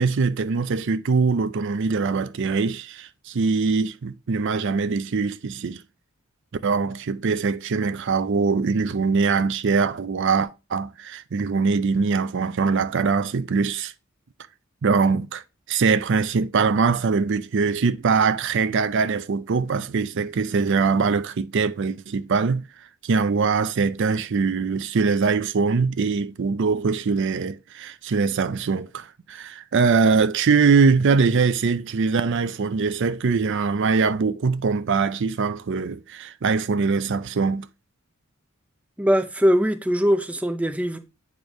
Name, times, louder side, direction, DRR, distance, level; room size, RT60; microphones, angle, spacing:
voice 1, 0.0-5.8 6.6-13.9 14.8-15.4 15.7-22.6 23.0-37.7, right 4 dB, 55° right, 0.4 m, -22 dB
voice 2, 39.0-41.0, equal, 5° right, 0.5 m, -21 dB
9.0 x 3.2 x 5.1 m
head